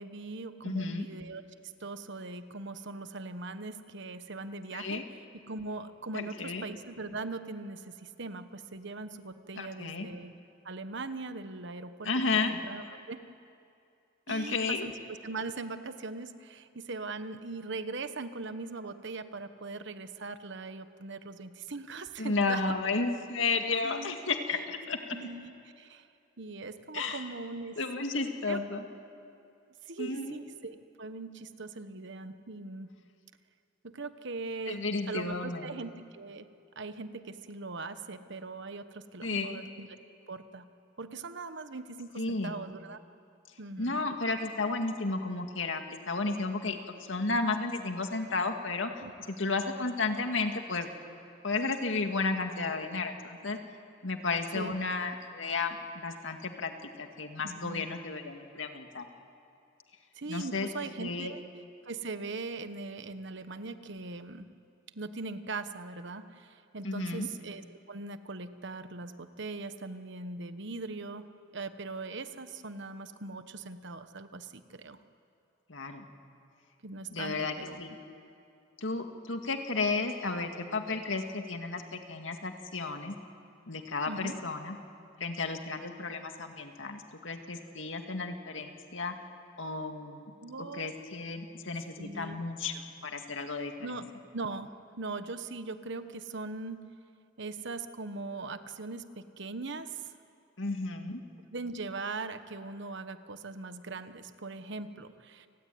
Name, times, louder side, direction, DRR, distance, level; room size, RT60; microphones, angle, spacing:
voice 1, 0.0-1.4 1.8-5.0 5.5-10.3 10.6-12.1 12.5-13.2 14.3-14.9 15.2-22.6 23.8-24.2 25.1-26.1 26.4-27.8 28.5-28.6 29.8-32.9 33.8-36.5 36.8-39.9 40.3-40.7 41.0-43.0 43.6-44.0 49.0-49.1 54.5-54.7 57.4-57.9 60.1-61.4 61.8-64.5 64.9-67.6 67.9-71.3 71.5-75.0 76.8-77.8 84.1-84.4 90.4-90.9 92.0-92.4 93.8-94.0 94.3-96.9 97.4-100.0 101.5-105.5, right 3 dB, 65° right, 10 dB, 1.3 m, -40 dB
voice 2, 0.6-1.1 4.7-5.0 6.1-6.7 9.6-10.1 12.0-12.6 14.3-14.9 22.2-25.2 26.9-27.2 27.8-28.8 30.0-30.4 34.7-35.8 39.2-39.6 42.2-42.6 43.8-48.9 49.3-50.9 51.4-53.6 54.0-56.7 57.0-59.1 60.3-60.7 61.0-61.3 66.8-67.3 75.7-76.1 77.1-78.0 78.8-83.2 83.7-84.8 85.2-89.1 89.6-94.0 100.6-101.2, left 3 dB, 70° left, 5 dB, 2.2 m, -33 dB
29.0 x 19.0 x 9.5 m, 2.5 s
head